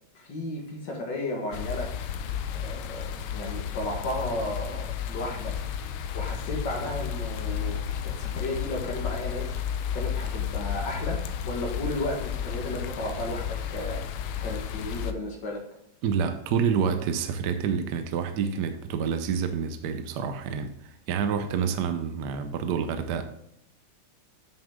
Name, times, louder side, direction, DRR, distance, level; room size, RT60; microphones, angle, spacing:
voice 1, 0.1-1.9 2.5-3.1 3.3-5.5 6.1-9.5 9.9-11.2 11.5-14.0 14.4-15.6, left 1 dB, 60° left, 2.3 m, -34 dB
sound 1, 1.5-15.1, left 8 dB, 80° left, 1.5 m, -32 dB
voice 2, 16.0-23.2, right 6 dB, 65° right, 1.2 m, -28 dB
9.0 x 6.4 x 3.6 m
omnidirectional pair, 2.2 m